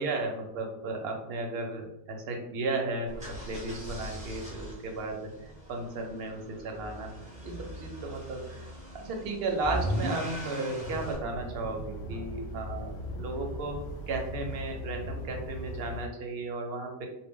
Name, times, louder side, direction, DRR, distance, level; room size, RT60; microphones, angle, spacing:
voice 1, 0.0-7.1 7.4-8.7 8.9-13.8 14.1-17.1, right 3 dB, 65° right, 2 dB, 0.7 m, -34 dB
sound 1, 3.1-11.2, equal, 5° right, 0.7 m, -38 dB
sound 2, 10.8-16.1, left 1 dB, 70° left, 0.8 m, -39 dB
2.1 x 2.1 x 3.4 m, 0.86 s
omnidirectional pair, 1.2 m